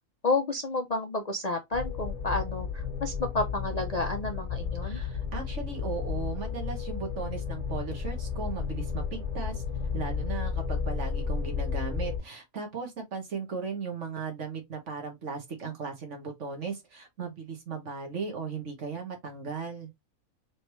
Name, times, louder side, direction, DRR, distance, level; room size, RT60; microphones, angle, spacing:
voice 1, 0.2-5.0, left 3 dB, 40° left, 0.5 m, -30 dB
sound 1, 1.7-12.2, left 6 dB, 25° right, 1.6 m, -33 dB
voice 2, 4.8-9.6 9.9-19.9, right 5 dB, 55° right, 1.6 m, -37 dB
4.1 x 3.3 x 3.0 m
omnidirectional pair, 1.5 m